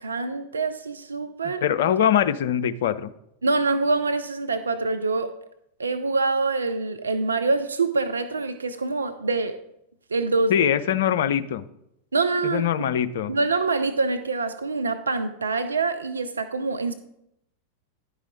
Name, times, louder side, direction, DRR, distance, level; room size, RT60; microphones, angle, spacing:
voice 1, 0.0-1.6 3.4-5.3 5.8-9.6 10.1-10.5 12.1-12.6 13.3-16.9, right 3 dB, 75° right, 9 dB, 0.4 m, -25 dB
voice 2, 1.4-3.1 10.5-11.6 12.4-13.3, left 9 dB, 60° left, 12 dB, 0.4 m, -23 dB
10.5 x 4.8 x 3.9 m, 0.79 s
figure-of-eight pair, 90°, 0 cm